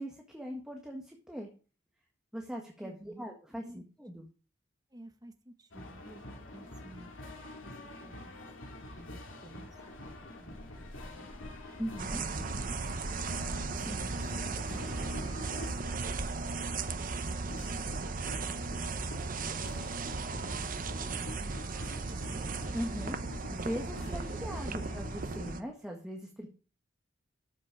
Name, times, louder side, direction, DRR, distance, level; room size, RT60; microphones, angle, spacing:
voice 1, 0.0-1.5 2.3-4.3 11.8-12.2 13.7-14.0 21.0-21.3 22.7-26.5, equal, 5° right, 0 dB, 1.7 m, -40 dB
voice 2, 2.8-3.2 3.6-3.8 4.9-7.7 8.0-8.3 8.6-9.7 10.0-11.3 12.6-12.8 13.8-14.2 15.6-16.9 17.2-18.1 18.7-22.4 24.1-24.2, right 1 dB, 20° right, 6 dB, 1.2 m, -54 dB
sound 1, 5.7-25.6, left 1 dB, 85° left, 2.5 m, -46 dB
sound 2, 12.0-25.6, right 4 dB, 45° right, 0.8 m, -36 dB
13.0 x 6.8 x 4.9 m, 0.37 s
head